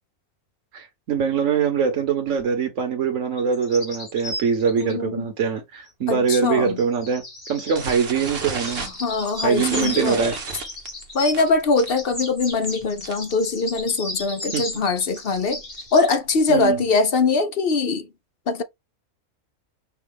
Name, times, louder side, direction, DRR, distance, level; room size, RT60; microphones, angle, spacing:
voice 1, 0.7-7.2 7.5-8.9 9.4-10.3 14.5-14.6 16.5-16.8, right 6 dB, 70° right, 1.5 m, -23 dB
sound 1, 3.4-5.0 6.3-11.5 11.8-16.1, left 2 dB, 30° left, 1.6 m, -35 dB
voice 2, 4.8-5.3 6.1-6.8 8.8-10.3 11.1-15.6 15.9-18.1 18.5-18.6, left 3 dB, 55° left, 0.8 m, -22 dB
sound 2, 7.7-13.4 13.6-13.9 14.2-14.3 14.6-14.9 15.4-16.9, right 5 dB, 50° right, 1.1 m, -34 dB
6.1 x 2.4 x 3.5 m
omnidirectional pair, 1.4 m